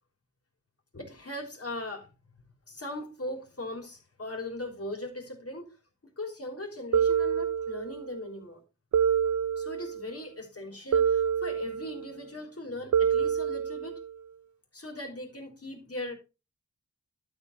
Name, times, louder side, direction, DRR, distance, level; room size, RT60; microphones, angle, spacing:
voice 1, 0.9-2.1 2.7-5.7 6.0-8.6 9.6-14.0 14.7-16.1, left 1 dB, 50° left, 3.5 m, -39 dB
sound 1, 6.9-8.1 8.9-10.1 10.9-12.1 12.9-14.1, right 8 dB, 75° right, 0.5 m, -27 dB
12.0 x 5.4 x 4.0 m
wide cardioid pair, 80°, 30 cm